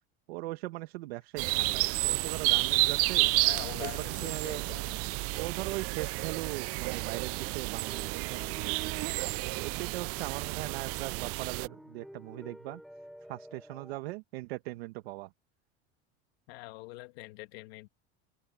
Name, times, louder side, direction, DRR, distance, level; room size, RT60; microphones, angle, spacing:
voice 1, 0.3-3.3 3.7-3.9 4.2-4.6 5.3-8.8 9.0-12.8 13.3-15.3, right 19 dB, 85° right, 1.7 m, -40 dB
sound 1, 1.4-11.7, right 23 dB, 50° right, 0.4 m, -31 dB
voice 2, 3.4-5.2 16.5-17.9, left 22 dB, 80° left, 2.0 m, -44 dB
sound 2, 6.9-14.0, equal, ahead, 5.9 m, -52 dB
supercardioid pair, 110°, 30 cm